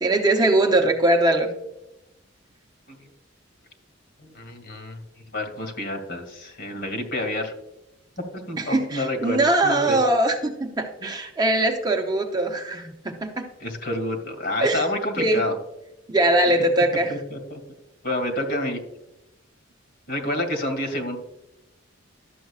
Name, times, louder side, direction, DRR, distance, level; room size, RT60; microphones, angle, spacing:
voice 1, 0.0-1.5 8.6-13.5 14.6-14.8 15.2-15.4 16.1-17.1, right 1 dB, 20° right, 3 dB, 0.7 m, -21 dB
voice 2, 4.2-5.0 5.3-7.5 8.5-10.0 11.0-11.1 13.6-15.5 16.5-16.6 17.1-17.6 18.0-18.8 20.1-21.2, left 1 dB, 60° left, 4 dB, 2.2 m, -29 dB
12.5 x 7.8 x 2.4 m, 0.88 s
head